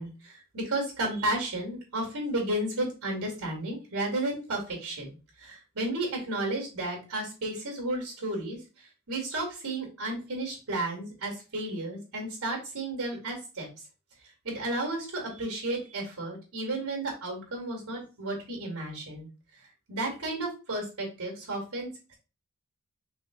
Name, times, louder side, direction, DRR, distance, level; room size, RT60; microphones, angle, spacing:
voice 1, 0.0-8.6 9.1-13.7 14.4-19.3 19.9-21.9, right 2 dB, 75° right, 1 dB, 2.4 m, -33 dB
5.8 x 3.6 x 2.4 m, 0.31 s
head